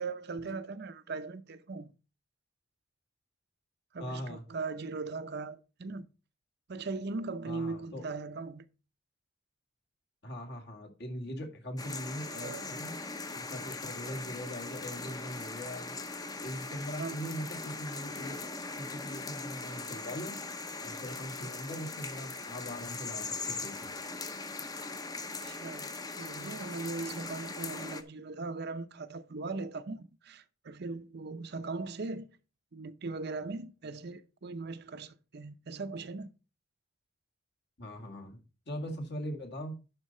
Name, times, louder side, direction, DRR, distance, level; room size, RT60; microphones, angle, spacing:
voice 1, 0.0-1.9 3.9-6.1 6.7-8.7 12.3-12.7 17.0-17.3 21.7-21.9 25.4-32.4 32.7-36.3, right 3 dB, 55° right, 0.6 m, -39 dB
voice 2, 4.0-4.5 7.4-8.0 10.2-13.0 13.3-16.0 16.4-18.4 18.8-20.4 20.8-24.0 37.8-39.8, equal, 60° left, 2.1 m, -41 dB
sound 1, 11.8-28.0, left 3 dB, 20° left, 0.7 m, -40 dB
11.0 x 4.1 x 5.4 m
head